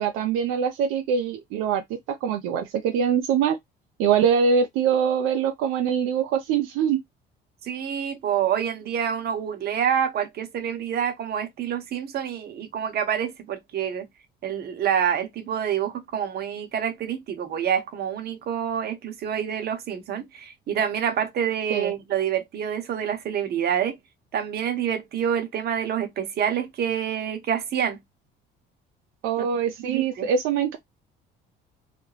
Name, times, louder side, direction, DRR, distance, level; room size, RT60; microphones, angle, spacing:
voice 1, 0.0-3.6 4.0-7.0 21.7-21.9 29.2-30.8, right 7 dB, 75° right, 0.5 m, -23 dB
voice 2, 7.6-14.1 14.4-24.0 24.3-28.0 29.8-30.3, right 8 dB, 50° right, 0.8 m, -27 dB
2.4 x 2.1 x 3.0 m
supercardioid pair, 90°, 21 cm